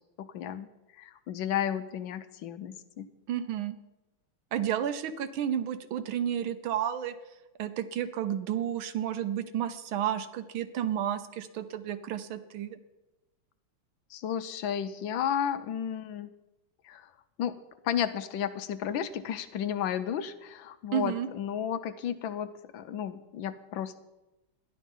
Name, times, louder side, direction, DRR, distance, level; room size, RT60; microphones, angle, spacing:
voice 1, 0.2-0.7 1.0-3.1 14.1-16.3 16.8-17.1 17.4-17.5 17.8-24.0, left 9 dB, 75° left, 12 dB, 1.4 m, -33 dB
voice 2, 3.3-3.7 4.5-7.1 7.6-12.8 20.9-21.3, right 10 dB, 80° right, 11 dB, 1.6 m, -31 dB
13.0 x 10.5 x 5.4 m, 1.0 s
omnidirectional pair, 2.2 m